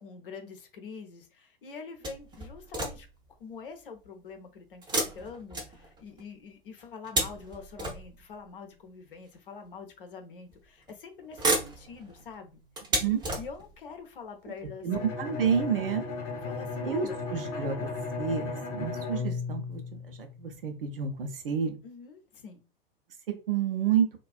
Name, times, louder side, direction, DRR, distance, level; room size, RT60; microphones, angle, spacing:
voice 1, 0.0-3.1 3.4-12.6 13.4-14.9 16.4-17.2 21.8-22.6, left 5 dB, 65° left, 0.7 m, -45 dB
sound 1, 2.0-3.3 4.8-6.2 6.8-8.4 9.3-9.4 10.5-10.9 11.2-13.9 14.6-14.7 15.0-15.1, right 2 dB, 15° right, 0.5 m, -33 dB
voice 2, 14.8-16.0 16.8-17.9 18.2-19.8 20.1-21.8 23.3-24.1, right 7 dB, 70° right, 0.6 m, -29 dB
Bowed string instrument, 14.9-20.6, left 4 dB, 35° left, 0.9 m, -35 dB
2.3 x 2.2 x 2.3 m
figure-of-eight pair, 95°, 29 cm